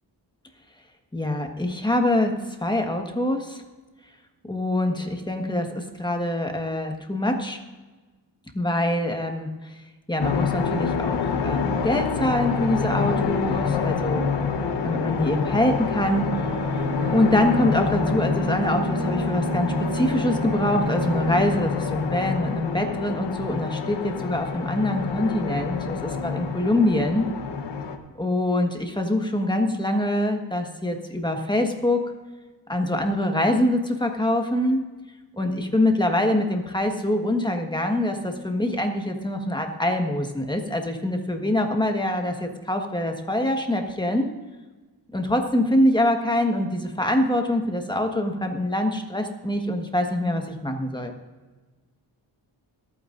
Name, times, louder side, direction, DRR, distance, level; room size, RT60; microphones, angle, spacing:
voice 1, 1.1-3.6 4.5-7.6 8.5-9.5 10.1-14.3 14.8-16.5 17.1-27.3 28.2-32.1 32.7-34.8 35.4-44.3 45.1-51.1, left 1 dB, 10° left, 3 dB, 1.5 m, -24 dB
sound 1, 10.2-28.0, left 5 dB, 70° left, 1.2 m, -27 dB
Bowed string instrument, 15.9-21.9, right 1 dB, 80° right, 2.0 m, -29 dB
27.5 x 9.2 x 2.6 m, 1.3 s
wide cardioid pair, 115°, 43 cm